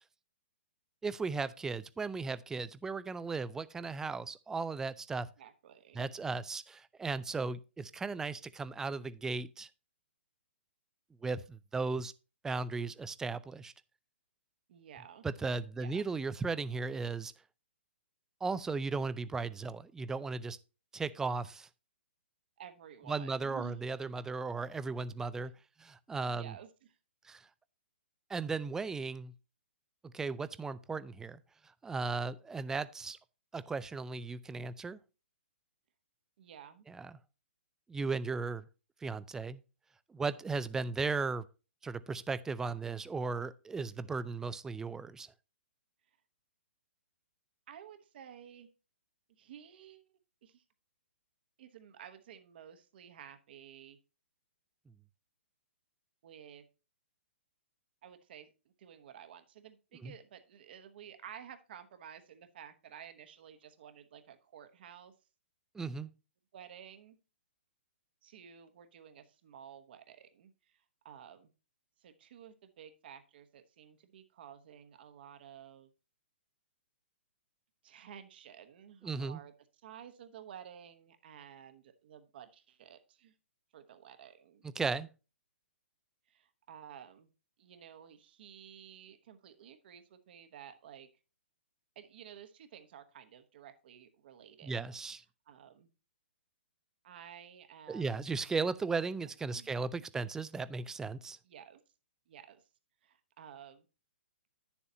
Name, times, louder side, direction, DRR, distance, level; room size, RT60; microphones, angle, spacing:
voice 1, 1.0-5.3 5.9-9.7 11.2-12.1 12.4-13.7 15.2-17.3 18.4-20.6 20.9-21.7 23.1-25.5 25.8-26.5 27.2-27.4 28.3-29.3 30.1-31.4 31.8-33.2 33.5-35.0 36.9-37.1 37.9-38.7 39.0-39.6 40.1-41.5 41.8-45.3 60.0-60.1 65.7-66.1 79.0-79.4 84.8-85.1 94.6-95.2 97.9-101.4, right 4 dB, 10° right, 0.4 m, -36 dB
voice 2, 5.4-6.1 14.7-15.3 15.7-16.1 22.6-23.8 26.2-27.0 36.4-36.9 47.7-48.7 49.3-50.0 50.4-50.6 51.6-54.0 56.2-56.6 58.0-65.1 66.5-67.2 68.2-71.5 72.0-75.9 77.8-79.5 79.8-83.3 83.7-84.6 86.3-87.3 87.6-91.1 91.9-94.8 95.5-95.9 97.0-98.3 98.9-99.7 100.1-100.2 101.4-101.8 102.3-102.7 103.0-103.9, right 9 dB, 55° right, 1.1 m, -53 dB
10.0 x 7.1 x 2.8 m
hypercardioid pair, 125°, 6 cm